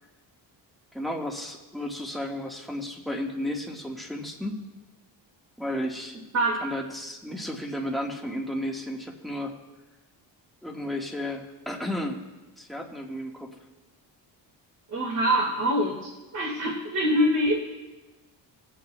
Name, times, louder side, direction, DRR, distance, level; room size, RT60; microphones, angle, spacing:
voice 1, 0.9-4.6 5.6-6.2 6.6-9.5 10.6-12.2 12.6-13.5, left 1 dB, ahead, -1 dB, 1.5 m, -33 dB
voice 2, 14.9-17.6, equal, 40° right, -2 dB, 2.1 m, -24 dB
21.5 x 8.7 x 2.3 m, 1.1 s
cardioid pair, 105°, 44 cm